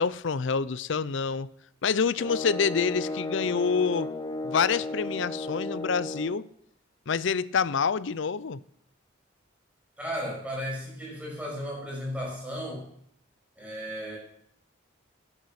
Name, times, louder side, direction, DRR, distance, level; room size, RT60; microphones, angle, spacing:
voice 1, 0.0-1.5 1.8-4.1 4.4-6.4 7.1-8.6, left 6 dB, 65° left, 18 dB, 0.5 m, -27 dB
sound 1, 2.2-6.4, left 2 dB, 20° left, 1.0 m, -34 dB
voice 2, 10.0-12.9 13.6-14.2, equal, 5° right, -4 dB, 6.1 m, -35 dB
11.0 x 10.5 x 6.6 m, 0.70 s
head